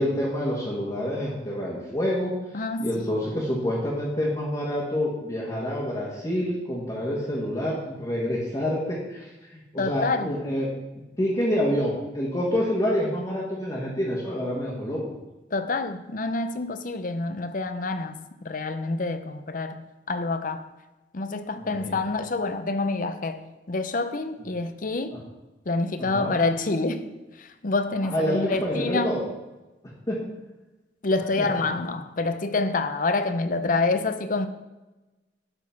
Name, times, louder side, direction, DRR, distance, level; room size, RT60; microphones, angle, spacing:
voice 1, 0.0-2.3 2.8-10.7 11.2-15.0 21.6-22.0 26.0-26.3 28.1-29.2 30.1-30.2 31.4-31.5, equal, 25° left, -6 dB, 1.8 m, -27 dB
voice 2, 2.5-3.1 9.8-10.3 15.5-19.8 20.1-20.7 21.1-23.4 23.7-25.2 25.7-27.0 27.4-29.2 31.0-34.5, left 3 dB, 50° left, 10 dB, 0.7 m, -27 dB
12.0 x 4.4 x 5.8 m, 1.1 s
head